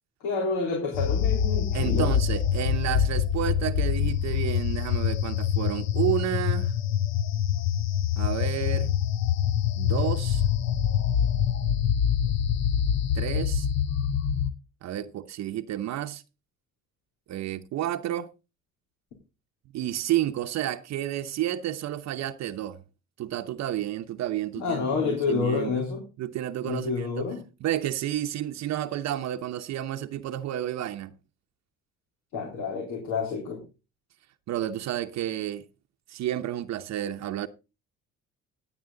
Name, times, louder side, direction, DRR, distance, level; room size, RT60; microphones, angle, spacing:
voice 1, 0.2-2.1 24.6-26.0 26.6-27.4 32.3-33.6, left 5 dB, 80° left, 3.7 m, -29 dB
sound 1, 0.9-14.5, left 9 dB, 60° left, 1.0 m, -25 dB
voice 2, 1.7-6.7 8.2-9.0 9.8-10.4 13.1-13.7 14.8-16.2 17.3-18.3 19.7-22.8 23.2-25.8 26.2-27.3 27.6-31.1 34.5-35.6 36.1-37.5, right 12 dB, 65° right, 0.8 m, -31 dB
16.0 x 8.9 x 3.8 m
cardioid pair, 100°, 29 cm